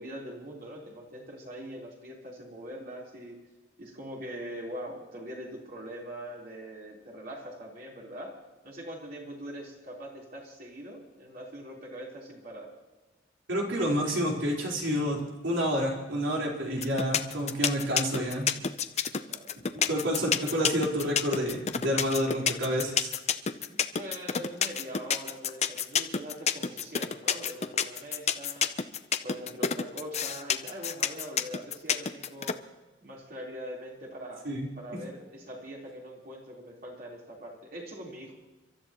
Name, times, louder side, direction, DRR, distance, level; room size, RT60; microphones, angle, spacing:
voice 1, 0.0-3.4 3.8-8.4 8.6-12.7 19.3-19.9 23.7-28.8 29.2-32.6 33.0-34.5 34.7-38.3, equal, 55° right, -4 dB, 4.0 m, -42 dB
voice 2, 13.5-18.5 19.7-23.1 34.4-34.7, equal, 85° right, -2 dB, 4.3 m, -29 dB
sound 1, 16.8-32.5, left 7 dB, 35° left, 0.7 m, -28 dB
30.0 x 13.5 x 3.1 m, 1.1 s
head